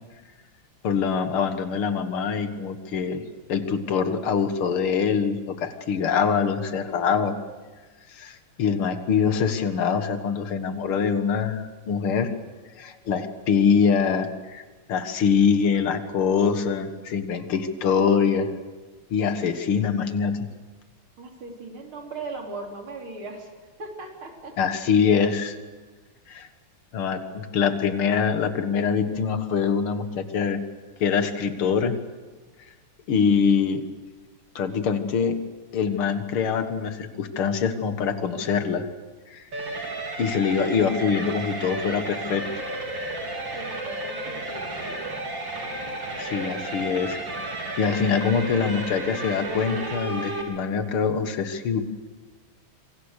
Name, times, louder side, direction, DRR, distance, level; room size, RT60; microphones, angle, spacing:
voice 1, 0.8-3.2 3.5-7.4 8.1-12.3 12.8-18.5 19.1-20.5 24.6-25.6 26.3-26.5 26.9-30.6 31.0-32.0 33.1-33.8 34.6-35.4 35.7-38.9 39.3-39.4 40.2-42.4 46.2-47.2 47.8-51.8, left 6 dB, 85° left, 9 dB, 2.5 m, -24 dB
voice 2, 21.2-23.5 23.8-24.5 43.5-45.0, right 3 dB, 75° right, 2 dB, 4.5 m, -38 dB
sound 1, 39.5-50.4, right 2 dB, 60° right, 4.3 m, -32 dB
26.5 x 24.5 x 6.7 m, 1.4 s
omnidirectional pair, 2.3 m